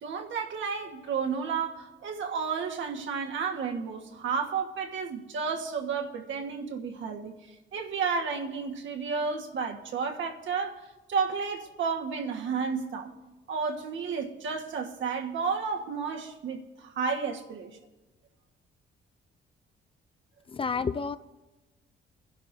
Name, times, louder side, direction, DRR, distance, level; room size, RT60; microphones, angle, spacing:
voice 1, 0.0-7.3 7.7-10.8 11.1-13.1 13.5-17.7, right 5 dB, 70° right, 1.6 m, -32 dB
voice 2, 20.5-21.2, left 5 dB, 25° left, 0.4 m, -30 dB
24.0 x 11.0 x 2.7 m
cardioid pair, 90°, 20 cm